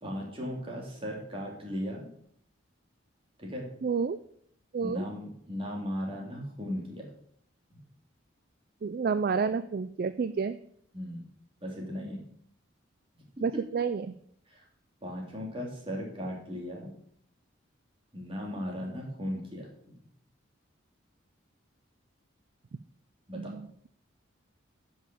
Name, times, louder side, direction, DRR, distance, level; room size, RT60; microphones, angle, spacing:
voice 1, 0.0-2.1 3.4-3.7 4.8-7.1 10.9-11.2 11.6-12.2 13.4-13.5 14.5-14.6 15.0-16.9 18.1-19.7 23.3-23.6, equal, 25° right, -1 dB, 2.8 m, -37 dB
voice 2, 3.8-4.2 4.7-5.0 8.8-10.6 13.4-14.1 23.4-23.6, right 5 dB, 50° right, 13 dB, 0.3 m, -29 dB
9.9 x 5.7 x 6.8 m, 0.67 s
head